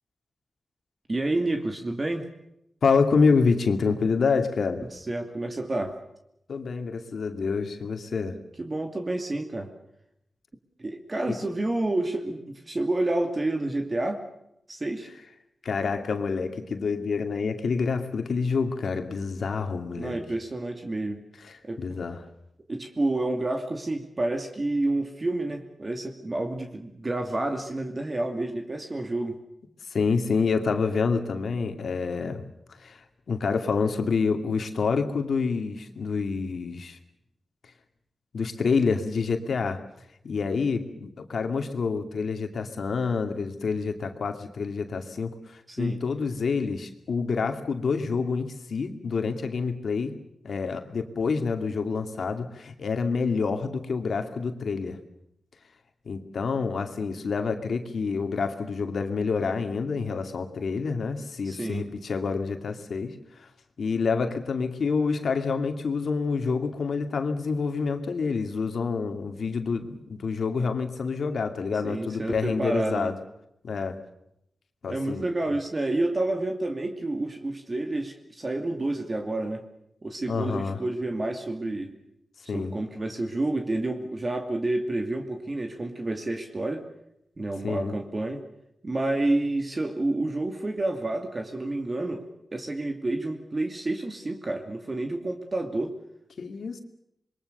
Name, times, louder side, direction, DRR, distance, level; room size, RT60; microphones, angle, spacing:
voice 1, 1.1-2.3 4.9-6.0 8.6-9.7 10.8-14.2 14.7-15.1 20.0-21.2 21.6-21.8 22.7-29.4 45.7-46.0 61.4-61.9 71.8-73.1 74.8-79.6 80.0-81.9 82.5-86.8 87.4-88.4 88.8-92.3 92.5-95.9, right 2 dB, 30° right, 5 dB, 2.5 m, -29 dB
voice 2, 2.8-4.8 6.5-8.4 11.3-11.4 15.6-20.2 21.4-22.3 29.9-32.4 32.8-37.0 38.3-39.8 40.2-50.1 50.4-55.0 56.1-63.5 63.8-73.1 73.6-74.0 74.8-75.3 80.3-80.8 82.5-82.7 87.6-87.9 96.4-96.8, left 5 dB, 70° left, 6 dB, 2.5 m, -27 dB
27.0 x 22.5 x 6.9 m, 0.79 s
wide cardioid pair, 90°, 0 cm